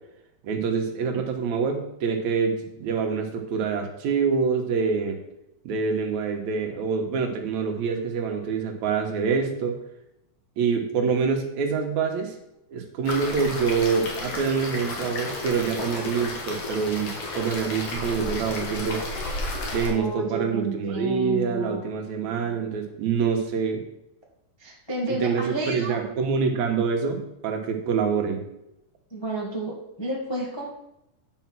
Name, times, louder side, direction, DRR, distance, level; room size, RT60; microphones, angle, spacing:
voice 1, 0.4-5.2 5.6-9.8 10.6-12.3 12.7-19.0 19.7-23.8 25.2-28.5, right 5 dB, 70° right, 4 dB, 2.4 m, -26 dB
sound 1, 13.0-19.9, left 2 dB, 55° left, 2.4 m, -32 dB
voice 2, 19.8-21.8 24.6-26.0 29.1-30.7, right 1 dB, 15° left, -3 dB, 0.9 m, -31 dB
9.3 x 5.2 x 6.0 m, 0.86 s
omnidirectional pair, 3.5 m